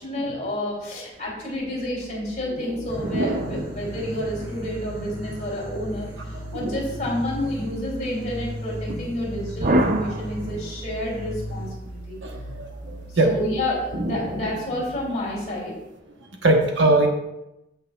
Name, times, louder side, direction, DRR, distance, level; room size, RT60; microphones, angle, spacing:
voice 1, 0.0-12.2 13.1-15.7, left 1 dB, 40° left, -4 dB, 3.3 m, -29 dB
sound 1, 1.2-15.7, right 1 dB, 15° left, 1.8 m, -40 dB
sound 2, 2.6-4.9 6.6-7.8 9.6-10.9 13.9-15.4, right 1 dB, 40° right, 0.7 m, -29 dB
sound 3, 2.9-11.7, left 1 dB, 25° right, 2.5 m, -37 dB
voice 2, 12.2-13.3 16.4-17.1, right 2 dB, 75° right, 2 dB, 1.3 m, -21 dB
15.0 x 5.5 x 2.5 m, 0.91 s
head